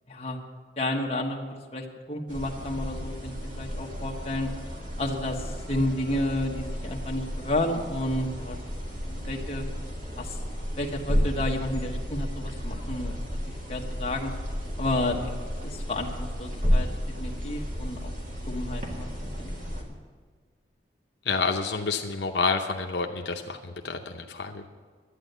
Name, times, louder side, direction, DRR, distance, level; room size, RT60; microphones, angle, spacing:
voice 1, 0.1-0.4 0.8-4.5 5.0-8.6 8.9-9.6 10.2-10.4 10.8-13.2 13.7-14.3 14.8-15.3 15.6-16.9 17.2-18.1 18.5-19.6, left 1 dB, 35° left, 0 dB, 1.3 m, -31 dB
sound 1, 2.3-19.8, equal, 45° right, 2.0 m, -32 dB
voice 2, 21.2-24.7, left 4 dB, 75° left, 3 dB, 0.8 m, -29 dB
11.5 x 9.2 x 8.0 m, 1.5 s
head